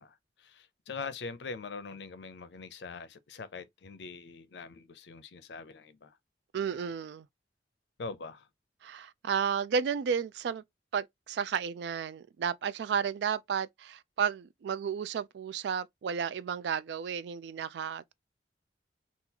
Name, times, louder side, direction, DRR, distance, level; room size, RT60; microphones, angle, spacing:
voice 1, 0.0-6.2 8.0-8.5, left 4 dB, 75° left, 0.5 m, -43 dB
voice 2, 6.5-7.3 8.8-10.6 10.9-18.1, right 7 dB, 75° right, 0.3 m, -32 dB
3.8 x 2.4 x 2.8 m
head